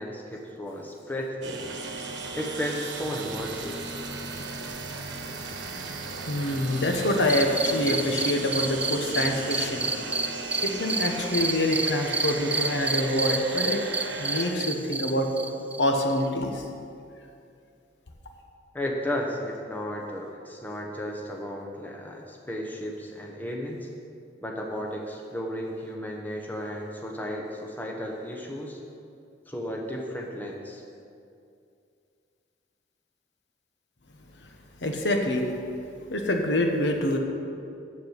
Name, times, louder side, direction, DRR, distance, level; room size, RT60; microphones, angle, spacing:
voice 1, 0.0-1.6 2.3-3.8 18.7-23.8 24.4-28.8 29.5-30.8, equal, 10° left, -1 dB, 1.0 m, -34 dB
sound 1, 1.4-14.5, right 3 dB, 75° right, 1.1 m, -36 dB
voice 2, 6.3-9.8 10.6-13.8 14.2-15.3 15.8-16.7 34.8-35.5 36.1-37.2, left 1 dB, 75° left, 3 dB, 1.1 m, -26 dB
sound 2, 7.3-16.3, right 3 dB, 10° right, 0.3 m, -30 dB
7.4 x 7.3 x 8.0 m, 2.4 s
head